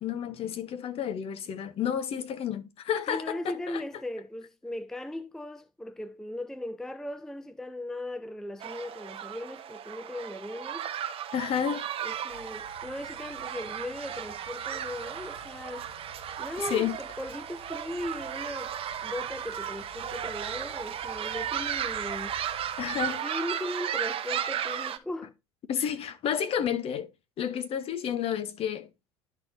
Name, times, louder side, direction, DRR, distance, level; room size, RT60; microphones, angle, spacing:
voice 1, 0.0-3.8 11.3-11.8 16.6-17.0 22.8-23.2 25.7-27.1 27.4-28.9, left 9 dB, 40° left, 1.0 m, -31 dB
voice 2, 3.1-10.9 12.0-15.9 16.4-22.3 23.1-25.3 25.8-25.9, left 1 dB, 5° left, 0.4 m, -38 dB
sound 1, 8.6-25.0, right 9 dB, 40° right, 0.9 m, -35 dB
sound 2, 12.3-23.1, left 4 dB, 85° left, 1.3 m, -53 dB
11.0 x 4.4 x 2.6 m
hypercardioid pair, 80°, 15 cm